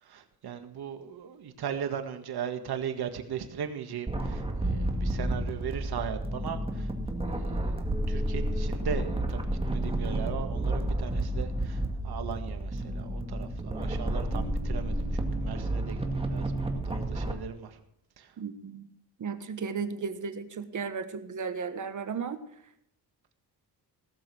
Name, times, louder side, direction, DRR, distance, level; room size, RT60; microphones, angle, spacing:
voice 1, 0.0-6.9 7.3-15.1 15.4-17.8 18.2-18.3, right 8 dB, 65° right, 7 dB, 1.9 m, -38 dB
sound 1, 4.1-17.3, right 1 dB, 15° right, 2.1 m, -31 dB
voice 2, 18.4-18.9 19.2-22.4, right 5 dB, 45° right, 10 dB, 1.4 m, -35 dB
17.5 x 7.5 x 6.2 m, 0.76 s
cardioid pair, 120°, 40 cm